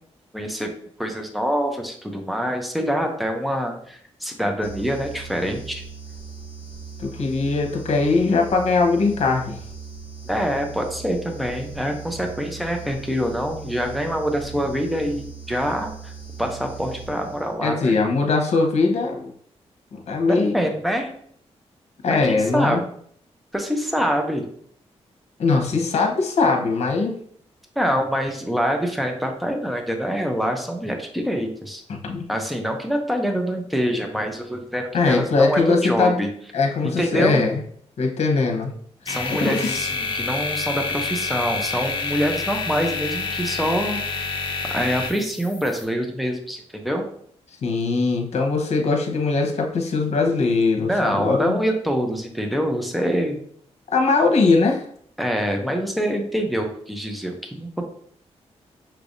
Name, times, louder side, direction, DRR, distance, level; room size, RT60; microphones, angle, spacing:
voice 1, 0.3-0.7 1.0-5.8 10.2-16.1 16.4-18.0 20.3-21.1 22.1-22.8 23.5-24.5 27.8-31.8 32.3-36.3 36.8-37.4 39.1-44.0 44.7-47.1 50.8-53.4 55.2-57.8, equal, ahead, 3 dB, 0.7 m, -25 dB
sound 1, 4.6-17.7, right 5 dB, 15° right, 1.3 m, -39 dB
voice 2, 7.0-9.6 17.6-19.3 19.9-20.6 22.0-22.8 25.4-27.2 31.9-32.3 34.9-36.2 36.5-37.6 38.0-38.7 39.1-39.9 47.6-51.6 53.9-54.8, left 4 dB, 75° left, 2 dB, 1.0 m, -21 dB
sound 2, 39.1-45.8, left 4 dB, 45° left, 0.8 m, -28 dB
5.8 x 3.3 x 2.6 m, 0.63 s
wide cardioid pair, 125°, 11 cm